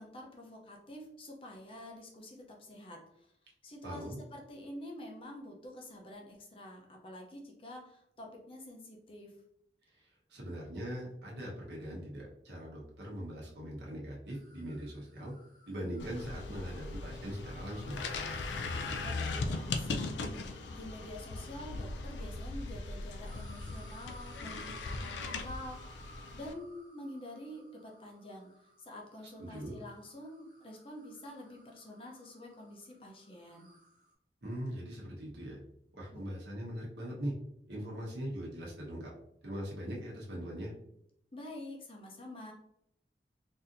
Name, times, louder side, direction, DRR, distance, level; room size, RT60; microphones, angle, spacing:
voice 1, 0.0-3.3 3.6-9.4 18.9-20.2 20.7-26.1 26.3-33.7 36.1-36.2 41.3-42.5, left 1 dB, 30° left, 0 dB, 0.6 m, -47 dB
voice 2, 3.8-4.2 10.0-15.3 15.7-18.0 29.4-29.8 34.4-35.6 35.9-37.3 37.7-39.1 39.4-40.7, equal, 80° right, -3 dB, 1.2 m, -41 dB
sound 1, 14.3-22.9 23.3-34.1, right 1 dB, 45° right, 0.8 m, -60 dB
sound 2, 16.0-26.5, left 3 dB, 90° left, 0.4 m, -39 dB
4.1 x 2.7 x 2.6 m, 0.74 s
head